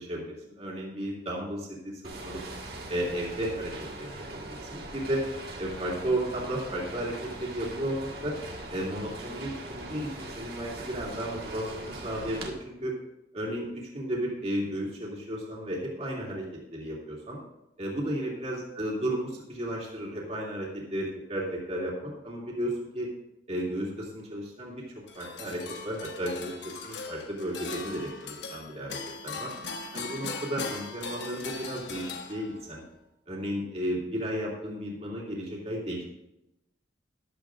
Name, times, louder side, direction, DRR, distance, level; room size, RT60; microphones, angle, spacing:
voice 1, 0.1-2.4 2.9-5.2 5.6-8.4 8.7-12.9 13.3-17.4 17.8-23.1 23.5-24.8 25.1-29.0 29.2-29.5 29.9-32.8 33.3-36.0, right 1 dB, 35° right, -4 dB, 2.8 m, -34 dB
sound 1, 2.0-12.5, right 2 dB, 60° right, 1.7 m, -41 dB
sound 2, 25.1-32.8, left 4 dB, 90° left, 1.2 m, -39 dB
13.5 x 11.5 x 2.6 m, 0.89 s
head